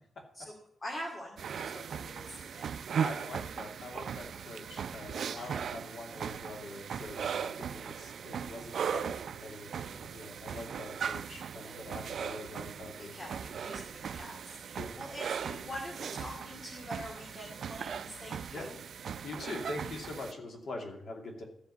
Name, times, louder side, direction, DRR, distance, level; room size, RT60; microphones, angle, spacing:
voice 1, 0.8-2.7 5.3-5.6 11.5-11.8 12.9-18.8, left 1 dB, 25° left, -1 dB, 2.4 m, -45 dB
sound 1, 1.4-20.3, right 7 dB, 70° right, 0.5 m, -38 dB
voice 2, 3.0-13.1 14.8-14.9 18.5-18.7 19.2-21.4, left 2 dB, 60° left, 2 dB, 2.6 m, -44 dB
13.0 x 6.7 x 8.4 m, 0.69 s
wide cardioid pair, 150°, 0 cm